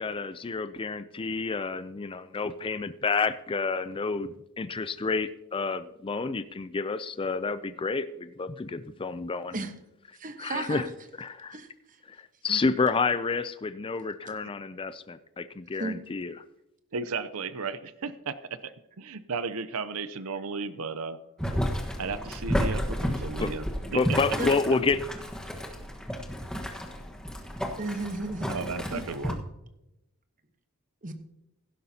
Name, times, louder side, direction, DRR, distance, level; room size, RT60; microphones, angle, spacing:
voice 1, 0.0-9.6 10.4-10.9 11.2-11.6 12.1-12.2 12.4-16.3 23.4-23.5 23.9-25.0, left 4 dB, 25° left, 13 dB, 0.4 m, -29 dB
voice 2, 10.1-10.8 11.5-12.0 12.5-12.6 15.8-16.0 24.4-24.5 27.8-29.0 31.0-31.1, right 2 dB, 35° right, 7 dB, 1.2 m, -34 dB
voice 3, 16.9-18.3 19.0-21.2 22.0-23.7 23.9-24.2 28.5-29.4, right 4 dB, 70° right, 13 dB, 0.7 m, -34 dB
Boiling, 21.4-29.3, equal, 5° left, 1.3 m, -32 dB
16.5 x 12.0 x 2.8 m, 0.91 s
head